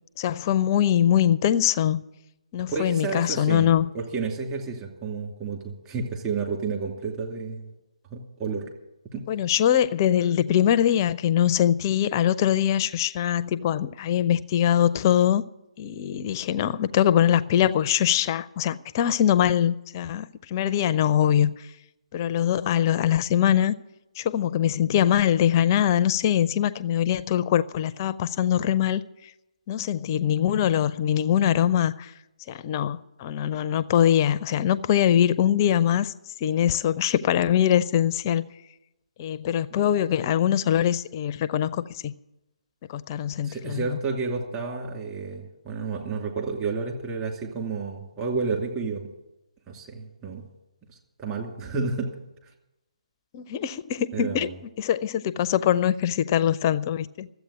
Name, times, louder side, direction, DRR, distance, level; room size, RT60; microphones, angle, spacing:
voice 1, 0.2-2.0 2.5-3.9 9.3-15.4 15.8-21.5 22.1-23.7 24.2-29.0 29.7-32.1 32.5-36.1 36.4-38.5 39.2-42.1 42.9-44.0 53.3-54.5 54.8-57.3, left 10 dB, 30° left, 0.5 m, -23 dB
voice 2, 2.7-3.7 3.9-7.7 8.1-8.7 9.1-9.2 43.4-49.1 49.7-50.4 50.9-52.1 54.1-54.5, right 4 dB, 20° right, 2.6 m, -31 dB
14.0 x 8.2 x 9.2 m
figure-of-eight pair, 140°, 4 cm